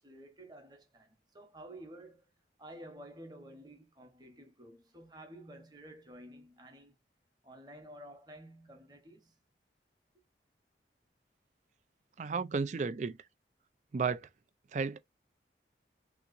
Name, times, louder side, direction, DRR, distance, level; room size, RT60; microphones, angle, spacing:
voice 1, 0.0-2.3 2.6-6.9 7.4-9.4, right 1 dB, 25° right, 0.9 m, -52 dB
voice 2, 12.2-13.2 13.9-14.2 14.7-15.0, right 5 dB, 40° right, 0.3 m, -33 dB
3.5 x 2.9 x 2.5 m
head